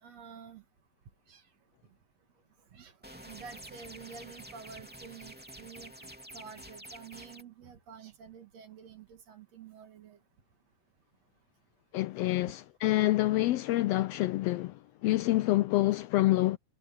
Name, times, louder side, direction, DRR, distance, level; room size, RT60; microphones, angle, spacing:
voice 1, 0.0-0.6 1.3-1.5 2.7-10.2, right 6 dB, 60° right, 2.9 m, -49 dB
sound 1, 3.0-7.4, equal, 5° right, 2.1 m, -49 dB
voice 2, 11.9-16.6, left 17 dB, 85° left, 1.4 m, -27 dB
omnidirectional pair, 3.4 m